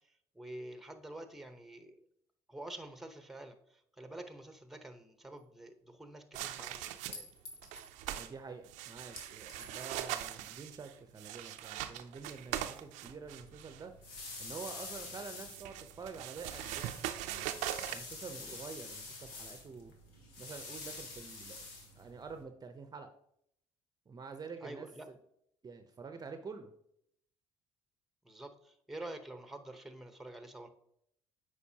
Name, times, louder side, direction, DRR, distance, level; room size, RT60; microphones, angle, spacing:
voice 1, 0.3-2.0 2.5-7.3 18.4-18.6 24.6-25.1 28.2-30.7, right 1 dB, ahead, 8 dB, 0.9 m, -48 dB
Chink clink, 5.4-5.5 7.1-7.9 9.2-10.0, left 1 dB, 50° left, 1.9 m, -50 dB
sound 1, 6.3-7.3 7.6-8.3 8.6-13.8 15.1-18.0, right 12 dB, 75° right, 0.5 m, -41 dB
voice 2, 8.1-13.9 14.4-17.6 17.9-19.9 20.4-21.6 22.0-23.1 24.1-25.1 25.6-26.7, right 5 dB, 30° right, 7 dB, 0.6 m, -48 dB
sound 2, 13.2-22.4, left 3 dB, 90° left, 1.2 m, -48 dB
8.2 x 4.9 x 2.8 m, 0.72 s
hypercardioid pair, 65°, 12 cm